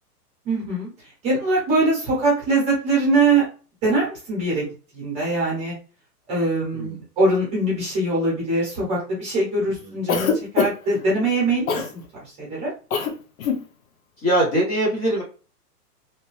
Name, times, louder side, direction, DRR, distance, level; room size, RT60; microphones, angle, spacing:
voice 1, 0.4-3.4 3.8-4.6 4.9-5.7 6.3-12.7, right 2 dB, 15° right, -5 dB, 0.9 m, -22 dB
Cough, 10.1-11.0 11.7-11.9 12.9-13.1 13.4-13.6, left 5 dB, 60° left, 0.7 m, -22 dB
voice 2, 14.2-15.2, right 1 dB, 25° left, -5 dB, 0.8 m, -22 dB
2.9 x 2.1 x 3.1 m, 0.36 s
hypercardioid pair, 155°, 47 cm